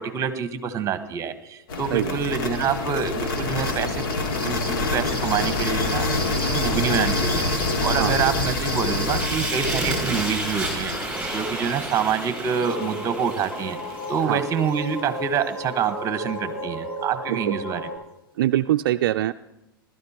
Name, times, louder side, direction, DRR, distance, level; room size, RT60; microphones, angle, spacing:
voice 1, 0.0-7.4 7.8-10.9 11.3-13.8 14.1-17.9, right 7 dB, 25° right, 10 dB, 1.2 m, -26 dB
sound 1, 1.7-13.6, left 2 dB, 75° left, 2.1 m, -27 dB
Fire, 5.9-15.1, right 2 dB, 10° right, 6.1 m, -33 dB
sound 2, 12.6-18.0, left 1 dB, 30° left, 5.7 m, -34 dB
voice 2, 18.4-19.3, right 13 dB, 65° right, 10 dB, 0.4 m, -23 dB
19.5 x 12.5 x 2.9 m, 0.94 s
hypercardioid pair, 110°, 12 cm